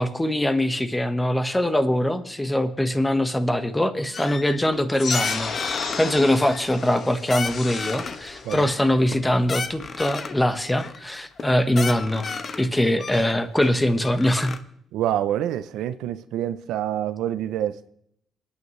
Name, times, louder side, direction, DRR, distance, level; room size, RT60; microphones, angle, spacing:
voice 1, 0.0-12.3 12.6-14.6, left 1 dB, 10° left, 1.3 m, -22 dB
sound 1, 4.1-4.8 5.1-6.0 6.4-7.0 7.3-8.2 8.5-10.4 10.8-11.0 11.4-11.5 11.7-12.7 13.0-14.6, left 5 dB, 45° left, 1.0 m, -33 dB
sound 2, 4.9-10.0, left 5 dB, 60° left, 1.7 m, -33 dB
voice 2, 14.9-17.9, right 11 dB, 90° right, 0.6 m, -27 dB
28.0 x 9.7 x 3.2 m
cardioid pair, 90°, 0 cm